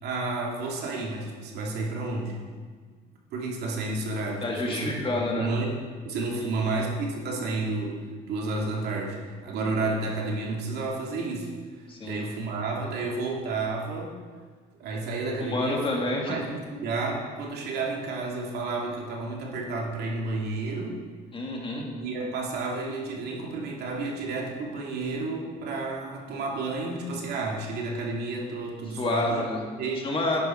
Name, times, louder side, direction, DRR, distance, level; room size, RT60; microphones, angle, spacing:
voice 1, 0.0-2.4 3.3-5.8 6.0-11.5 11.8-14.2 14.8-15.8 16.3-21.0 21.9-29.5 29.8-30.1, right 3 dB, 75° right, -1 dB, 2.6 m, -31 dB
voice 2, 4.4-5.5 11.9-12.2 15.4-16.4 21.3-21.8 29.0-29.6 30.0-30.4, left 2 dB, 30° left, -1 dB, 2.4 m, -28 dB
11.0 x 10.0 x 4.6 m, 1.5 s
cardioid pair, 110°, 17 cm